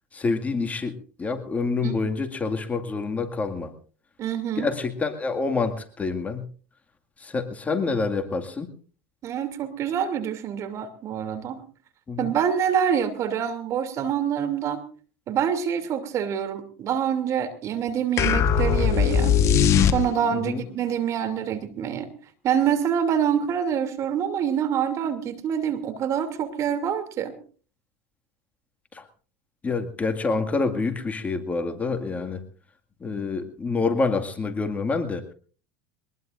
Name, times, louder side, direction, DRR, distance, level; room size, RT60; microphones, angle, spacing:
voice 1, 0.1-0.9 1.2-3.7 4.6-6.4 7.2-8.7 12.1-12.3 20.3-20.6 28.9-29.0 29.6-32.4 33.0-35.2, left 4 dB, 20° left, 6 dB, 2.1 m, -27 dB
voice 2, 4.2-4.7 9.2-11.6 12.2-14.8 15.3-19.4 19.8-22.1 22.4-27.4, right 8 dB, 45° right, 8 dB, 2.8 m, -26 dB
sound 1, 18.2-20.4, left 7 dB, 45° left, 1.3 m, -20 dB
22.5 x 20.5 x 2.6 m, 0.40 s
supercardioid pair, 100°, 7 cm